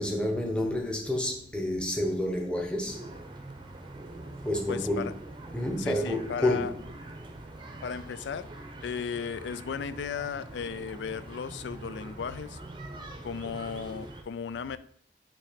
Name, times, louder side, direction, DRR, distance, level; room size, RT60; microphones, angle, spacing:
voice 1, 0.0-3.1 4.4-5.1 5.5-6.9, left 1 dB, 5° left, 0.9 m, -29 dB
sound 1, 2.9-14.2, right 2 dB, 25° right, 0.6 m, -44 dB
voice 2, 4.7-5.1 5.8-6.7 7.8-8.5 8.8-12.6 13.2-14.8, left 6 dB, 85° left, 0.4 m, -35 dB
7.3 x 2.9 x 5.1 m
head